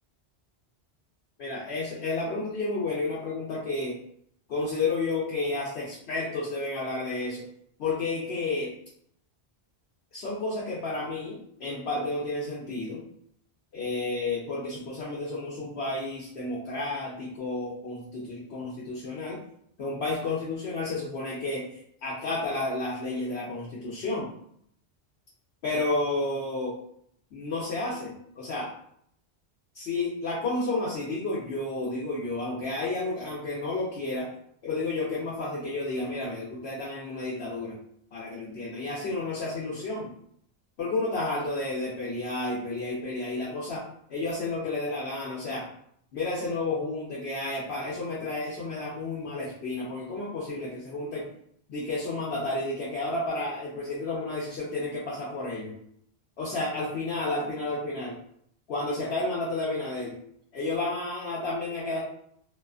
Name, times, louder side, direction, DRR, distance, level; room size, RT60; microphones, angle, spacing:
voice 1, 1.4-4.0 4.5-7.4 7.8-8.7 10.1-13.0 13.7-19.4 19.8-24.3 25.6-26.8 27.3-28.7 29.7-34.3 34.6-37.8 38.1-40.1 40.8-43.8 44.1-45.7 46.1-51.3 51.7-55.8 56.4-58.2 58.7-60.2 60.5-62.0, left 2 dB, 75° left, -5 dB, 0.9 m, -31 dB
2.4 x 2.4 x 2.3 m, 0.67 s
omnidirectional pair, 1.1 m